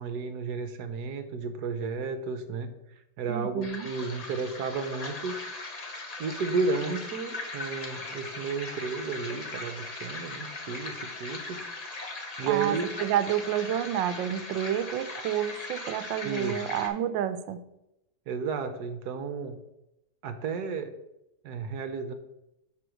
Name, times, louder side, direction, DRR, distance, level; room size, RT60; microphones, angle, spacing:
voice 1, 0.0-2.7 3.2-5.3 6.2-11.6 12.4-12.9 16.2-16.6 18.3-19.6 20.2-20.9 21.4-22.1, right 4 dB, 65° right, 9 dB, 1.3 m, -32 dB
voice 2, 3.3-3.9 12.5-17.6, right 10 dB, 85° right, 11 dB, 1.3 m, -29 dB
sound 1, 3.6-16.9, left 2 dB, 30° left, 0.8 m, -39 dB
7.6 x 3.8 x 6.3 m, 0.87 s
omnidirectional pair, 2.0 m